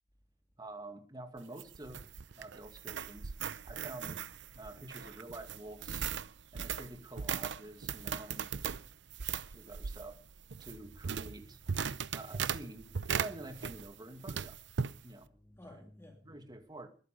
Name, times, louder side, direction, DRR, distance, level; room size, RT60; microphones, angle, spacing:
voice 1, 0.6-2.1 2.3-3.3 3.6-4.3 4.5-6.1 6.5-8.7 9.5-10.2 10.6-11.6 12.1-14.6 15.0-15.3 15.7-15.8 16.2-16.9, right 2 dB, 25° right, 2.3 m, -48 dB
sound 1, 1.4-14.0 14.3-15.0, right 7 dB, 65° right, 0.7 m, -38 dB
voice 2, 11.7-12.2 14.9-16.3, left 1 dB, 15° left, 2.9 m, -55 dB
21.5 x 12.0 x 5.3 m
head